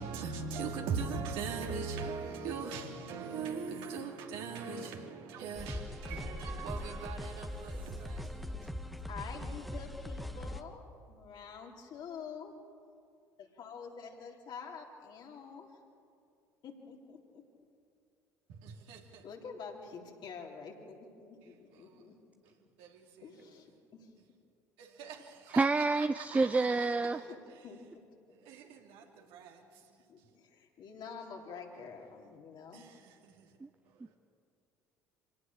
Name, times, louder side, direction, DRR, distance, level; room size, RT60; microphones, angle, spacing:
voice 1, 0.0-8.7 18.5-19.2 21.8-22.0 22.8-23.3 24.8-27.1 28.5-29.6 32.7-33.4 34.0-34.1, right 5 dB, 65° right, 3.0 m, -40 dB
sound 1, 5.6-10.6, left 1 dB, ahead, 1.6 m, -41 dB
voice 2, 9.1-12.6 13.6-15.8 16.6-17.4 19.2-22.3 23.2-24.1 27.0-27.8 30.1-32.8, left 6 dB, 50° left, 3.7 m, -47 dB
voice 3, 25.5-27.2, right 3 dB, 15° right, 0.6 m, -28 dB
25.5 x 18.0 x 7.3 m
hypercardioid pair, 60°, 9 cm